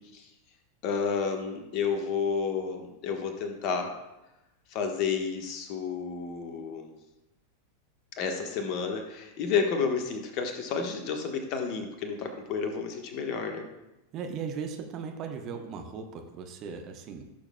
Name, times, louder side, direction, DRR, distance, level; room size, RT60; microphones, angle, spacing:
voice 1, 0.8-3.9 4.7-6.9 8.2-13.7, left 5 dB, 40° left, 4 dB, 1.3 m, -31 dB
voice 2, 14.1-17.3, right 6 dB, 35° right, 4 dB, 1.0 m, -37 dB
16.0 x 7.1 x 2.3 m, 0.95 s
figure-of-eight pair, 90°, 0 cm